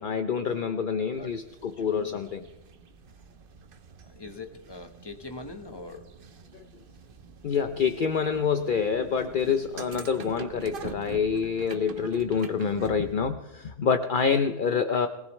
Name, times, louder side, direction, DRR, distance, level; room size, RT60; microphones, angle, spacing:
voice 1, 0.0-2.4 7.4-15.1, left 6 dB, 55° left, 8 dB, 0.8 m, -27 dB
sound 1, 1.1-13.1, right 5 dB, 60° right, 1.0 m, -46 dB
voice 2, 1.8-2.2 4.1-6.1, left 3 dB, 25° left, 5 dB, 1.3 m, -42 dB
21.5 x 18.5 x 3.2 m, 1.1 s
omnidirectional pair, 1.1 m